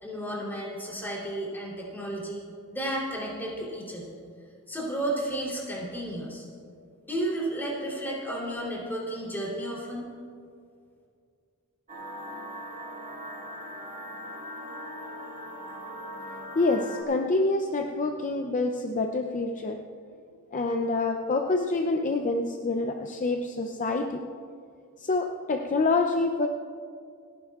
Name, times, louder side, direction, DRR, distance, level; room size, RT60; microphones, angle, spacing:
voice 1, 0.0-2.4 2.7-4.2 4.7-6.4 7.0-10.1, right 1 dB, 10° left, -5 dB, 3.2 m, -32 dB
sound 1, 11.9-17.0, equal, 35° right, 1.9 m, -40 dB
voice 2, 16.5-19.8 20.5-24.2 25.0-26.5, left 3 dB, 35° left, 4 dB, 0.5 m, -27 dB
28.5 x 11.0 x 2.4 m, 2.3 s
head